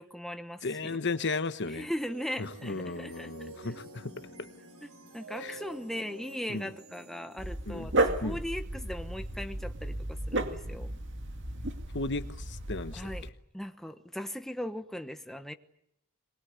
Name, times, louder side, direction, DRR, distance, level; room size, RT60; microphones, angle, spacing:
voice 1, 0.0-1.0 1.6-3.7 4.8-10.9 12.9-13.3 13.5-15.5, equal, ahead, 7 dB, 1.1 m, -39 dB
voice 2, 0.6-1.9 2.4-4.3 5.4-5.6 6.5-6.7 7.7-7.9 8.2-8.4 11.9-13.0, left 3 dB, 55° left, 11 dB, 1.2 m, -35 dB
sound 1, 0.9-10.2, right 2 dB, 85° right, 6.4 m, -51 dB
Dog, 7.4-13.3, right 2 dB, 55° right, 2.2 m, -33 dB
23.0 x 21.0 x 9.6 m, 0.76 s
head